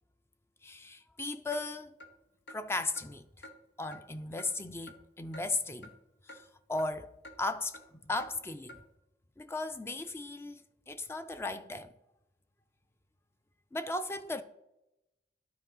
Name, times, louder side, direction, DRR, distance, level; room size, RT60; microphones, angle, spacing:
voice 1, 0.6-1.9 2.5-3.5 3.8-5.9 6.3-6.4 6.7-7.1 7.4-8.8 9.4-11.9 13.7-14.4, left 2 dB, 15° left, 0.3 m, -36 dB
Clock, 1.5-1.6 2.0-2.1 2.5-2.6 3.0-3.1 3.4-3.6 3.9-4.0 4.4-4.5 4.9-5.0 5.3-5.5 5.8-5.9 6.3-6.4 6.8-6.9 7.2-7.4 7.7-7.9 8.2-8.3 8.7-8.8, left 1 dB, 85° left, 0.9 m, -49 dB
11.5 x 4.8 x 3.8 m
head